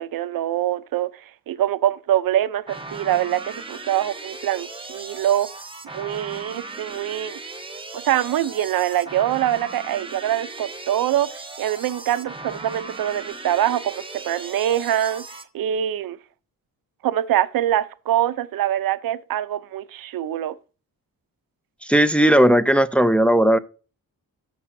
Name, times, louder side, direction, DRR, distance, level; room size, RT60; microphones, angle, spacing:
voice 1, 0.0-7.4 7.9-15.2 15.5-16.2 17.0-20.6, right 11 dB, 80° right, 0.7 m, -24 dB
sound 1, 2.7-15.4, right 3 dB, 15° right, 0.9 m, -37 dB
voice 2, 21.8-23.6, right 1 dB, 5° left, 0.4 m, -16 dB
13.0 x 5.5 x 2.7 m
wide cardioid pair, 135°, 34 cm